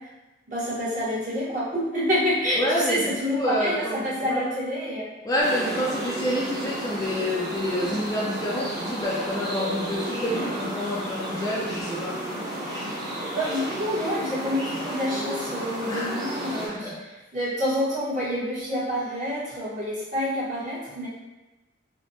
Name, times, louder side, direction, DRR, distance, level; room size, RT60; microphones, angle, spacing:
voice 1, 0.5-5.0 13.3-16.9 17.3-21.1, equal, 45° right, -9 dB, 1.0 m, -27 dB
voice 2, 2.5-4.4 5.2-12.2 15.9-16.2 16.6-17.0, left 1 dB, 20° left, -5 dB, 0.3 m, -28 dB
sound 1, 5.4-16.7, right 1 dB, 20° right, 0.7 m, -32 dB
3.3 x 2.1 x 2.6 m, 1.1 s
head